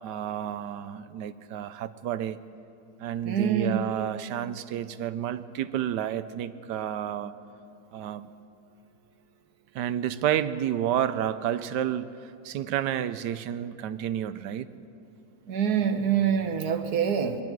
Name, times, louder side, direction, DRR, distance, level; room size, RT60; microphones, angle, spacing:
voice 1, 0.0-2.4 3.0-7.3 7.9-8.3 9.7-14.7, right 10 dB, 80° right, 14 dB, 1.3 m, -30 dB
voice 2, 3.2-3.9 15.5-17.4, right 8 dB, 65° right, 7 dB, 1.6 m, -25 dB
27.5 x 22.0 x 4.6 m, 2.7 s
omnidirectional pair, 1.9 m